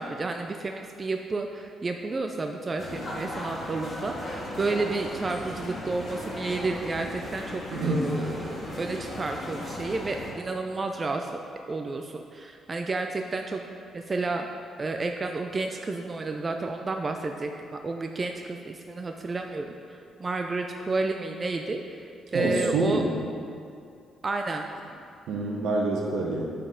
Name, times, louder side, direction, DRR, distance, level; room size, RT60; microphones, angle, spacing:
voice 1, 0.0-11.3 11.7-13.6 13.9-14.5 14.8-23.0 24.2-24.7, right 3 dB, 30° right, 4 dB, 0.4 m, -31 dB
sound 1, 2.8-10.3, left 1 dB, 35° left, 1.7 m, -37 dB
voice 2, 7.7-8.1 22.3-23.1 25.3-26.5, right 2 dB, 75° right, -1 dB, 1.1 m, -26 dB
9.2 x 4.1 x 3.9 m, 2.5 s
cardioid pair, 90°, 0 cm